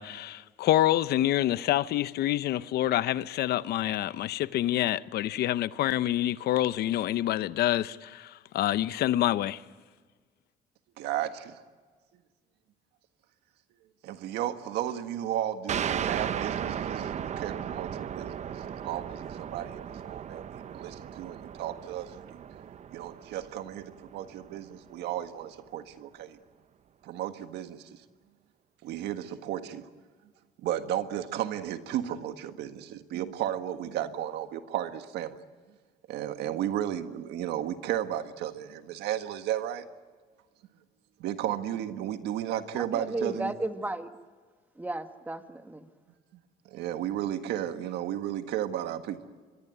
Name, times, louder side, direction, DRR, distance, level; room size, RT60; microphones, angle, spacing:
voice 1, 0.0-9.6, left 13 dB, 70° left, 0.8 m, -27 dB
voice 2, 11.0-11.6 14.0-22.4 22.9-26.4 27.0-28.0 28.8-29.9 30.6-35.4 36.1-39.8 41.2-43.5 46.6-49.2, right 11 dB, 80° right, 1.6 m, -34 dB
sound 1, 15.7-24.9, right 8 dB, 45° right, 0.8 m, -36 dB
voice 3, 42.7-44.1 44.8-45.9, right 2 dB, 10° right, 1.7 m, -34 dB
26.0 x 22.5 x 9.2 m
cardioid pair, 110°, 17 cm